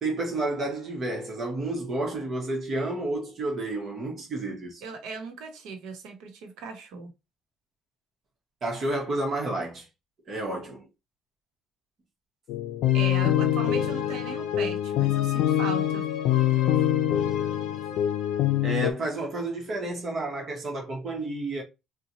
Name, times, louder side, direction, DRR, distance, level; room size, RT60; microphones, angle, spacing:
voice 1, 0.0-4.8 8.6-9.9 10.3-10.9 18.6-21.6, right 2 dB, 35° right, 1.0 m, -30 dB
voice 2, 4.8-7.1 12.9-16.0, right 5 dB, 75° right, 0.9 m, -37 dB
sound 1, 12.5-18.9, left 11 dB, 80° left, 0.4 m, -24 dB
3.9 x 2.2 x 2.9 m
cardioid pair, 155°, 0 cm